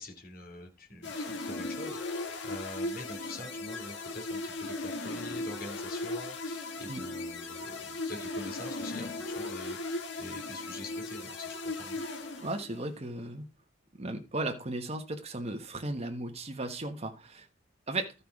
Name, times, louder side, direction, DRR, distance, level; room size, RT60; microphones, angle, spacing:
voice 1, 0.0-12.0, left 1 dB, 50° left, 3.1 m, -45 dB
sound 1, 1.0-12.9, left 2 dB, 65° left, 1.7 m, -37 dB
voice 2, 12.4-13.4 14.0-17.4 17.9-18.1, right 2 dB, 35° right, 1.3 m, -35 dB
13.0 x 5.6 x 4.8 m
head